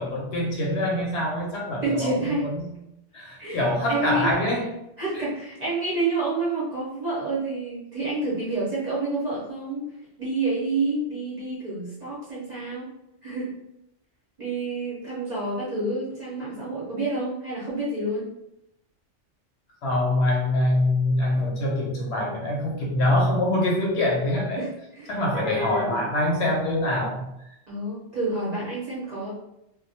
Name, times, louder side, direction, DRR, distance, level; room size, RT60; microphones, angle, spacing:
voice 1, 0.0-2.7 3.1-4.7 5.1-5.2 19.8-24.6 25.1-27.3, left 1 dB, 70° left, -2 dB, 0.8 m, -24 dB
voice 2, 1.8-2.5 3.4-3.6 3.9-4.3 5.0-9.9 10.2-12.9 13.2-13.5 14.4-18.3 24.6-26.0 27.7-29.3, right 2 dB, 40° right, -8 dB, 0.7 m, -28 dB
2.2 x 2.1 x 2.7 m, 0.84 s
omnidirectional pair, 1.3 m